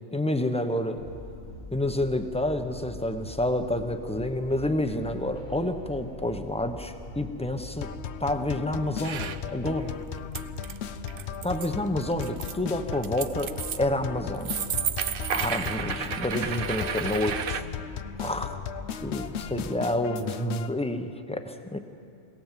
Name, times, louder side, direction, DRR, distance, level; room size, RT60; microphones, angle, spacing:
voice 1, 0.1-1.0 1.7-7.9 8.2-9.9 11.4-14.5 15.3-17.6 18.2-18.6 19.0-21.8, left 1 dB, 5° left, 7 dB, 0.9 m, -29 dB
sound 1, 1.0-19.7, left 1 dB, 45° left, 1.5 m, -43 dB
sound 2, 7.8-20.7, left 8 dB, 70° left, 0.9 m, -37 dB
sound 3, 9.0-9.4 9.7-10.8 11.1-11.7 12.0-12.5 12.8-13.8 14.4-17.6, right 8 dB, 55° right, 0.8 m, -32 dB
21.5 x 17.5 x 7.6 m, 2.6 s
omnidirectional pair, 1.2 m